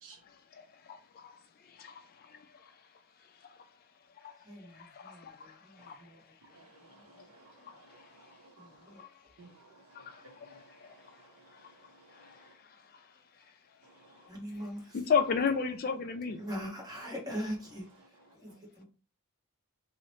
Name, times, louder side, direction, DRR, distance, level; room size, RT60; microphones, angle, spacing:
voice 1, 0.3-2.8 3.4-3.6 4.2-6.1 7.6-8.3 9.0-9.1 9.9-11.7 12.1-13.1 14.9-16.4, left 6 dB, 40° left, 0.3 m, -36 dB
voice 2, 4.4-7.7 8.6-9.3 14.3-15.1 16.4-18.8, equal, 15° right, 1.0 m, -43 dB
voice 3, 6.5-9.0 9.4-12.5 13.8-14.3 18.5-18.6, right 3 dB, 70° right, 0.6 m, -58 dB
2.8 x 2.0 x 3.0 m
head